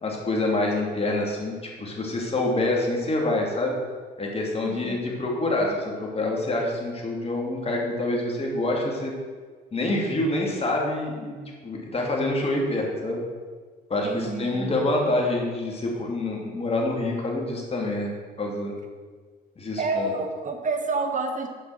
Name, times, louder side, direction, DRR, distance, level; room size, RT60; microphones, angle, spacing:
voice 1, 0.0-3.7 4.2-9.1 9.7-13.2 13.9-18.1 18.4-18.7 19.6-20.1, left 2 dB, 30° left, -1 dB, 2.8 m, -26 dB
voice 2, 4.6-5.0 14.0-14.7 19.8-21.5, right 3 dB, 40° right, 5 dB, 1.6 m, -29 dB
8.1 x 5.7 x 7.8 m, 1.6 s
supercardioid pair, 80°, 20 cm